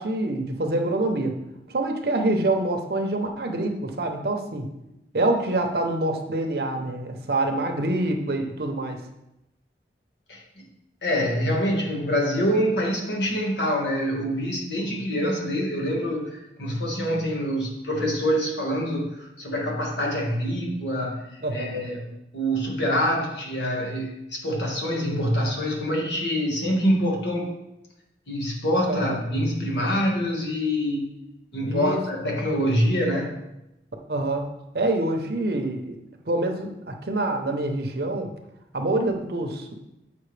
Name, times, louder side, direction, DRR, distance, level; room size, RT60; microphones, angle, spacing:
voice 1, 0.0-1.3 1.7-4.7 5.1-9.0 14.2-14.3 14.8-15.0 21.4-21.8 28.9-29.4 31.6-32.0 34.1-34.5 34.7-36.0 36.3-38.3 38.7-39.7, right 2 dB, 60° right, 4 dB, 0.7 m, -26 dB
voice 2, 10.3-10.6 11.0-27.5 28.3-31.1 31.5-33.4, equal, 75° left, -1 dB, 1.5 m, -25 dB
7.6 x 5.5 x 3.3 m, 0.89 s
head